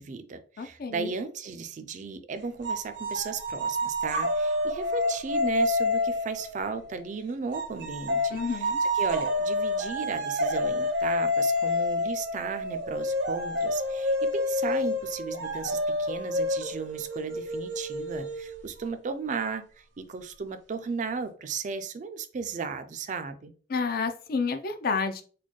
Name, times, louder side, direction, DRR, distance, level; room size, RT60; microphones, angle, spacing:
voice 1, 0.0-23.5, right 5 dB, 45° right, 10 dB, 0.4 m, -35 dB
voice 2, 0.6-1.1 8.3-8.8 23.7-25.2, left 5 dB, 55° left, 7 dB, 0.4 m, -30 dB
sound 1, 2.6-7.0 7.5-18.9, left 1 dB, 75° right, 0.8 m, -29 dB
4.1 x 2.2 x 3.0 m, 0.40 s
head